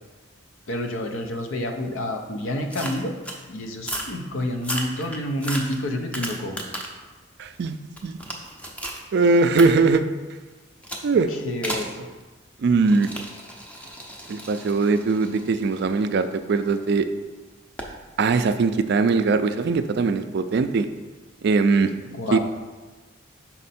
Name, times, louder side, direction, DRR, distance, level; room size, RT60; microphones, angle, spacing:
voice 1, 0.7-3.1 3.5-6.6 11.4-12.1 22.1-22.4, left 1 dB, 80° left, 5 dB, 0.7 m, -28 dB
sound 1, 2.7-3.4 3.8-4.2 4.6-7.0 7.5-9.0 9.6-9.7 10.8-11.1 11.6-11.9 12.8-16.8 17.8-18.0, equal, 5° left, 0.5 m, -34 dB
voice 2, 7.4-7.8 8.0-8.2 9.1-10.1 11.0-11.3 12.6-13.1 14.3-17.0 18.2-20.9 21.4-21.9 22.3-22.4, right 4 dB, 55° right, 10 dB, 0.3 m, -20 dB
5.4 x 4.2 x 4.2 m, 1.3 s
head